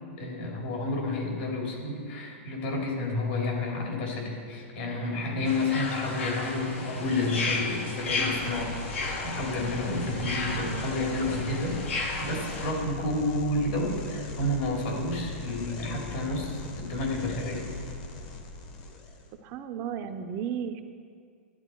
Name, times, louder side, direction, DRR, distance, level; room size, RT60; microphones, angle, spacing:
voice 1, 0.2-17.7, left 2 dB, 65° left, -1 dB, 3.1 m, -30 dB
voice 2, 5.4-5.7 19.4-20.8, right 8 dB, 35° right, 7 dB, 0.5 m, -34 dB
sound 1, 5.5-12.7, left 3 dB, 85° left, 1.7 m, -34 dB
sound 2, 7.9-19.3, left 3 dB, 40° left, 1.1 m, -40 dB
11.0 x 10.5 x 4.5 m, 2.1 s
supercardioid pair, 155°, 7 cm